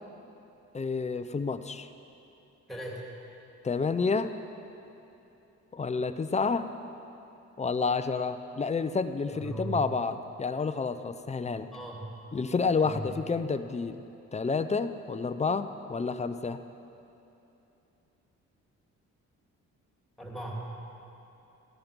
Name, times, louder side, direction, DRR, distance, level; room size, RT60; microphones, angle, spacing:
voice 1, 0.7-1.9 3.6-4.4 5.7-6.7 7.6-11.7 12.3-14.0 14.3-16.6, left 4 dB, 20° left, 10 dB, 0.6 m, -29 dB
voice 2, 2.7-3.1 9.3-9.9 11.7-12.2 12.8-13.1 20.2-20.6, right 1 dB, ahead, -3 dB, 2.8 m, -38 dB
15.0 x 10.5 x 5.2 m, 2.9 s
cardioid pair, 90°, 30 cm